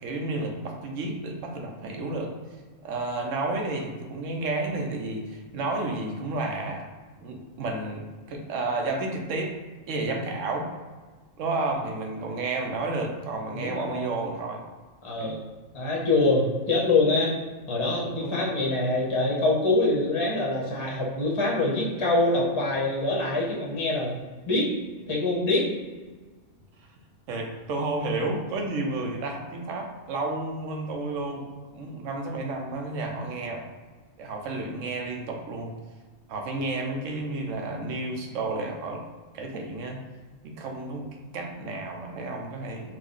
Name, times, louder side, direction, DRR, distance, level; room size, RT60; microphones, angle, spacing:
voice 1, 0.0-2.3 2.8-6.8 7.2-9.6 9.9-10.7 11.4-14.6 15.2-15.4 18.2-18.4 27.3-33.6 34.2-35.7 36.3-39.0 39.3-40.0 40.4-43.0, right 2 dB, 80° right, 2 dB, 1.0 m, -31 dB
voice 2, 13.5-14.1 15.0-15.4 15.7-17.3 17.7-24.7 25.1-25.7, left 2 dB, 30° left, -4 dB, 0.6 m, -25 dB
3.8 x 2.5 x 3.6 m, 1.4 s
omnidirectional pair, 1.3 m